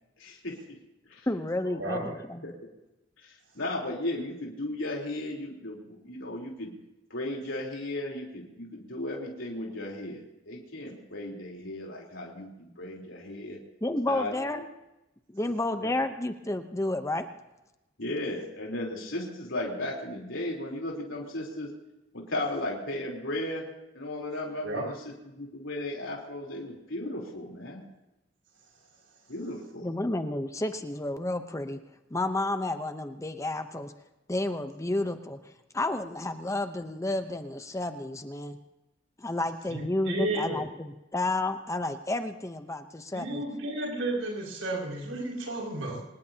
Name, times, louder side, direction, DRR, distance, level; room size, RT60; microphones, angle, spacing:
voice 1, 0.2-0.8 1.1-1.3 1.6-1.7 2.1-2.5 3.2-6.7 7.1-13.6 14.1-14.3 15.8-15.9 18.0-21.7 22.1-23.7 24.0-24.9 25.2-27.8 29.3-29.9, left 1 dB, 75° left, -1 dB, 3.7 m, -35 dB
voice 2, 1.3-2.5 13.8-14.6 15.3-17.3 29.8-31.8 32.1-33.9 34.3-38.6 39.2-43.4, left 2 dB, 15° left, 8 dB, 0.8 m, -31 dB
voice 3, 1.8-2.1 24.6-24.8 39.7-40.6 43.1-46.0, right 1 dB, 85° right, -2 dB, 5.9 m, -32 dB
25.0 x 20.0 x 2.9 m, 0.96 s
head